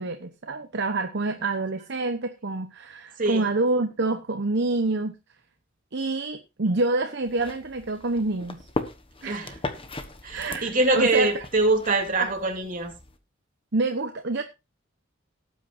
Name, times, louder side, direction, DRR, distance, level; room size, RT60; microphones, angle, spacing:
voice 1, 0.0-5.1 5.9-8.6 9.2-9.6 10.3-11.3 12.2-12.3 13.7-14.4, right 2 dB, 60° right, 1.0 m, -27 dB
voice 2, 3.2-3.5 9.2-9.5 10.2-12.9, right 2 dB, 45° right, 3.1 m, -24 dB
sound 1, 7.2-13.2, left 2 dB, 30° left, 1.2 m, -38 dB
18.0 x 8.8 x 2.7 m
head